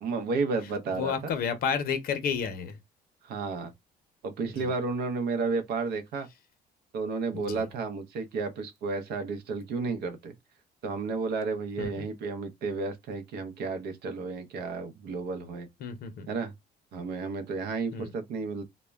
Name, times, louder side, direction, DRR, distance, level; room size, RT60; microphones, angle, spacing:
voice 1, 0.0-1.1 3.2-3.7 4.2-6.3 6.9-10.3 10.8-15.7 16.3-16.5 16.9-18.7, right 4 dB, 70° right, 0.6 m, -32 dB
voice 2, 0.6-2.8 4.4-4.7 7.3-7.7 11.8-12.1 15.8-16.3 17.9-18.1, left 6 dB, 60° left, 0.6 m, -32 dB
2.1 x 2.0 x 3.3 m
cardioid pair, 110°, 17 cm